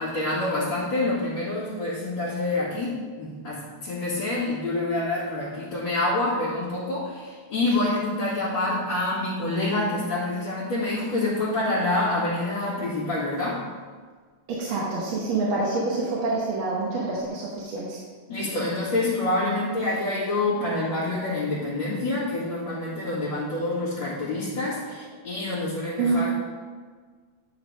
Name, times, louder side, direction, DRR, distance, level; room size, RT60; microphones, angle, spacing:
voice 1, 0.0-13.6 18.3-26.4, left 2 dB, 65° left, -12 dB, 2.8 m, -27 dB
voice 2, 14.5-18.0 18.4-18.5 26.0-26.2, right 3 dB, 70° right, -5 dB, 1.9 m, -27 dB
10.0 x 4.0 x 5.1 m, 1.5 s
omnidirectional pair, 2.4 m